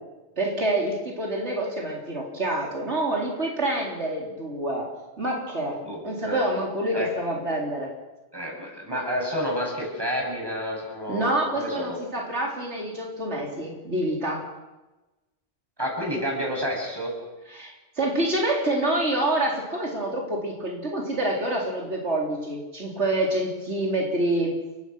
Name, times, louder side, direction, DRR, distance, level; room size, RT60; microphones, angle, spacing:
voice 1, 0.4-4.9 5.2-5.8 6.0-7.9 11.1-14.4 17.5-24.6, right 1 dB, 90° right, -1 dB, 4.2 m, -27 dB
voice 2, 5.8-6.4 6.9-7.1 8.3-12.0 15.8-17.1, equal, 20° right, -2 dB, 7.8 m, -30 dB
30.0 x 16.5 x 6.3 m, 1.1 s
omnidirectional pair, 1.1 m